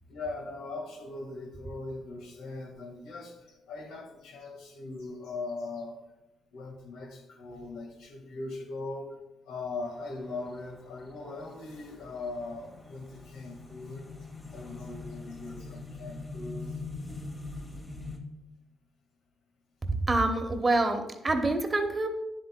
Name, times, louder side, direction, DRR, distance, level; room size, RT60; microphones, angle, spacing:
voice 1, 0.1-3.4 3.7-6.0 6.5-9.1 9.5-14.1 14.5-16.8, left 3 dB, 85° left, 1 dB, 1.6 m, -40 dB
sound 1, 9.8-18.2, left 3 dB, 20° left, 1.2 m, -43 dB
voice 2, 19.9-22.1, right 2 dB, 25° right, 5 dB, 1.0 m, -26 dB
10.0 x 7.8 x 2.2 m, 0.97 s
cardioid pair, 90°, 0 cm